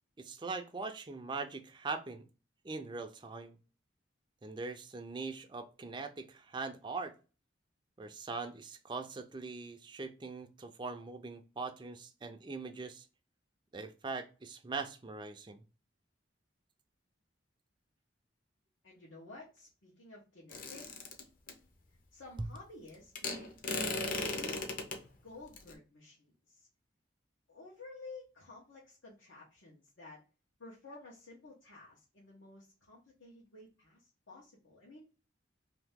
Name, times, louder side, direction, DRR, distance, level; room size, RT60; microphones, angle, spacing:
voice 1, 0.2-2.2 2.6-3.6 4.4-7.1 8.0-13.1 13.7-15.6, right 4 dB, 25° right, 0.4 m, -41 dB
voice 2, 18.8-20.9 22.1-23.5 24.2-24.8 25.2-26.7 27.5-30.2 30.6-35.1, left 2 dB, 90° left, 1.1 m, -52 dB
sound 1, 20.5-21.5 23.2-25.0 25.6-25.7, left 3 dB, 45° left, 0.7 m, -37 dB
2.8 x 2.8 x 3.5 m
head